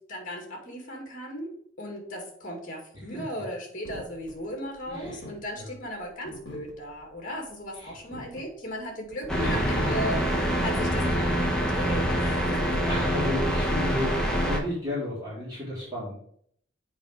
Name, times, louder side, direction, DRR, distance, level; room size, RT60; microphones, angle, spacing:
voice 1, 0.1-10.2 10.6-12.7, equal, 40° left, 1 dB, 2.3 m, -36 dB
sound 1, 3.8-14.8, left 1 dB, 60° left, 1.7 m, -45 dB
voice 2, 4.9-5.2 5.6-5.7 7.8-8.0 8.6-8.7 9.3-10.2 11.0-11.4 12.4-16.2, left 1 dB, 20° right, -11 dB, 3.7 m, -34 dB
sound 2, 9.3-14.6, equal, 5° left, 1.1 m, -25 dB
7.3 x 5.0 x 5.1 m, 0.64 s
head